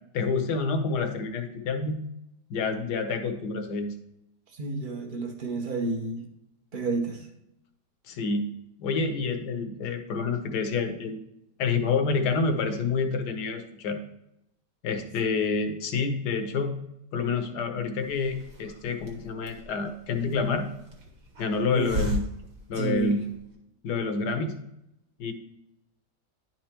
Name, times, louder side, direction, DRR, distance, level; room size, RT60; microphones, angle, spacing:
voice 1, 0.1-2.0 2.5-3.9 8.1-8.5 8.8-11.2 11.6-14.0 14.8-16.8 17.1-20.7 21.4-22.3 22.7-23.2 23.8-24.5 25.2-25.3, left 4 dB, 70° left, 7 dB, 1.4 m, -28 dB
voice 2, 4.5-6.3 6.7-7.3 21.7-21.9 22.8-23.2, right 3 dB, 40° right, 4 dB, 0.8 m, -30 dB
Hiss, 18.0-23.5, left 1 dB, 65° right, 1.8 m, -37 dB
10.5 x 4.4 x 2.9 m, 0.83 s
omnidirectional pair, 1.9 m